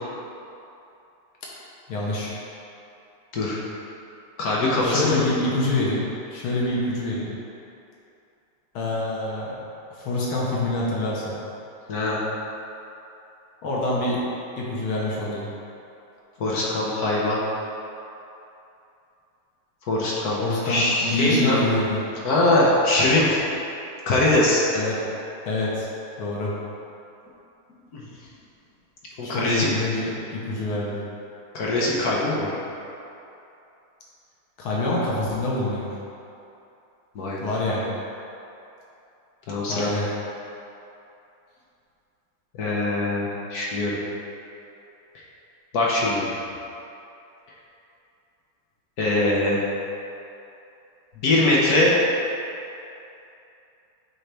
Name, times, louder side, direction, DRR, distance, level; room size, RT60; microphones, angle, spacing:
voice 1, 1.9-2.4 4.8-7.3 8.7-9.5 9.9-11.3 13.6-14.2 14.6-15.5 20.4-22.1 24.7-25.0 25.4-25.9 26.2-26.5 29.2-31.0 34.6-36.0 37.4-37.9 39.7-40.1, left 2 dB, 75° left, -5 dB, 1.8 m, -26 dB
voice 2, 4.4-5.2 11.9-12.2 16.4-17.4 19.9-20.4 20.6-21.6 22.2-23.4 24.1-24.6 27.9-28.0 29.2-29.7 31.5-32.5 37.1-37.5 39.5-40.0 42.6-44.0 45.7-46.2 49.0-49.6 51.2-51.9, left 2 dB, 60° left, -5 dB, 1.1 m, -22 dB
8.7 x 3.9 x 3.4 m, 2.8 s
omnidirectional pair, 2.4 m